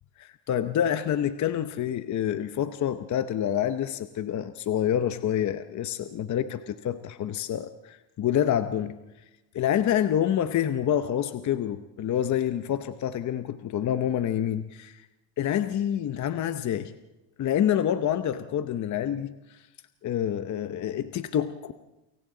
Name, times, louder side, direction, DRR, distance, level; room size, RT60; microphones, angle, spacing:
voice 1, 0.2-9.0 9.5-15.0 15.4-16.9 17.4-19.6 20.0-21.7, left 10 dB, 40° left, 10 dB, 0.8 m, -27 dB
29.0 x 24.5 x 3.9 m, 0.98 s
cardioid pair, 150°, 46 cm